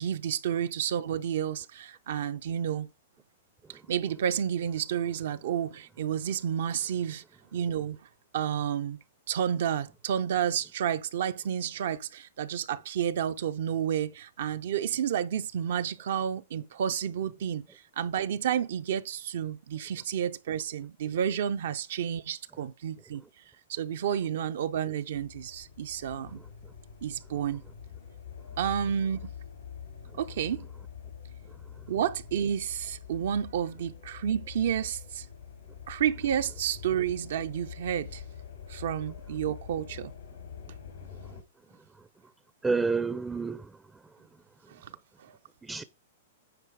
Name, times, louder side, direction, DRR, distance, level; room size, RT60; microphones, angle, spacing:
voice 1, 0.0-2.9 3.7-7.2 7.5-9.0 9.3-17.6 18.0-23.2 23.7-26.4 27.0-27.6 28.6-29.3 30.2-30.7 31.9-35.3 35.9-38.2 38.7-40.1 44.7-44.9 45.2-45.3, right 9 dB, 70° right, 0.5 m, -30 dB
sound 1, 25.1-41.4, left 7 dB, 90° left, 2.4 m, -45 dB
voice 2, 42.6-43.7 45.6-45.8, right 4 dB, 10° right, 0.4 m, -29 dB
9.3 x 4.0 x 4.7 m
hypercardioid pair, 135°, 0 cm